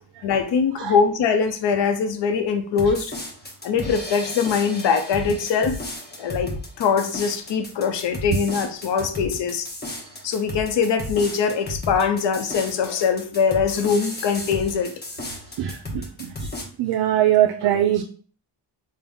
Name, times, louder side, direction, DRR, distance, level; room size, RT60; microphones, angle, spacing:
voice 1, 0.2-3.1 3.6-5.8 6.2-9.7 10.2-14.9, left 6 dB, 65° left, 7 dB, 0.6 m, -22 dB
sound 1, 2.8-16.6, left 1 dB, 20° left, 0.9 m, -34 dB
voice 2, 15.6-16.5 16.8-18.0, right 12 dB, 65° right, 4 dB, 0.5 m, -22 dB
3.8 x 2.1 x 3.5 m, 0.43 s
cardioid pair, 90°, 47 cm